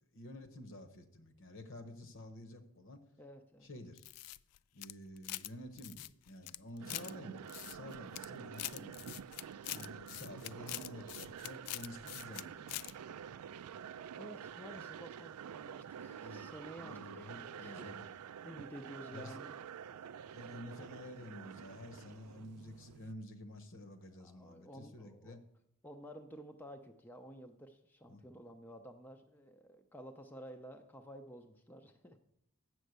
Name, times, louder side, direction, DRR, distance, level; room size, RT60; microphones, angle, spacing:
voice 1, 0.1-3.0 3.6-4.0 4.7-9.2 9.7-13.0 14.7-14.9 16.2-16.5 16.8-18.1 19.1-19.4 20.3-25.4 28.1-28.2, left 1 dB, 60° left, 8 dB, 1.0 m, -50 dB
voice 2, 3.2-3.7 14.2-18.2 18.4-19.9 24.2-25.4 25.8-32.2, equal, 10° left, 4 dB, 0.5 m, -52 dB
sound 1, 4.0-5.5 5.8-7.1 7.5-8.3 8.5-12.4 12.7-12.9, left 17 dB, 85° left, 0.3 m, -44 dB
sound 2, 6.8-23.1, right 8 dB, 85° right, 0.4 m, -48 dB
7.7 x 6.3 x 8.0 m, 0.76 s
head